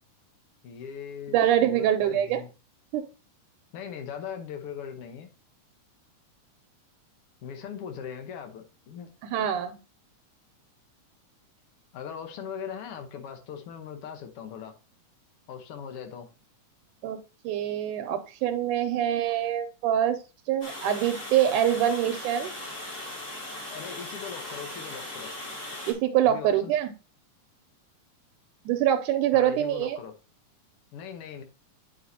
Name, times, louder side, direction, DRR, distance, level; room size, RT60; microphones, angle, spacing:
voice 1, 0.6-2.5 3.7-5.3 7.4-9.1 9.4-9.5 11.9-14.7 15.5-16.3 23.7-25.3 26.2-26.8 29.3-30.1 30.9-31.4, left 7 dB, 65° left, 1.5 m, -40 dB
voice 2, 1.3-2.4 2.9-3.0 9.2-9.8 17.0-17.2 17.4-20.2 20.5-22.5 25.9-26.9 28.7-30.0, right 10 dB, 80° right, 2.1 m, -25 dB
Water, 20.6-25.9, left 1 dB, 25° left, 2.5 m, -38 dB
9.3 x 5.5 x 2.7 m
omnidirectional pair, 3.6 m